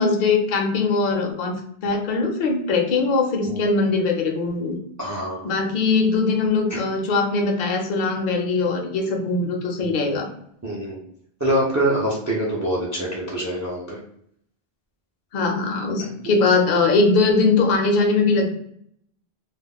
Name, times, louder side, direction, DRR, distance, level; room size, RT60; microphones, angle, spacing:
voice 1, 0.0-4.8 5.4-10.3 15.3-18.5, left 3 dB, 60° left, 2 dB, 0.7 m, -21 dB
voice 2, 5.0-5.5 6.7-6.8 9.8-10.1 10.6-11.0 11.4-14.0 16.0-16.1, right 1 dB, 25° right, -3 dB, 0.4 m, -25 dB
2.3 x 2.0 x 3.5 m, 0.69 s
omnidirectional pair, 1.0 m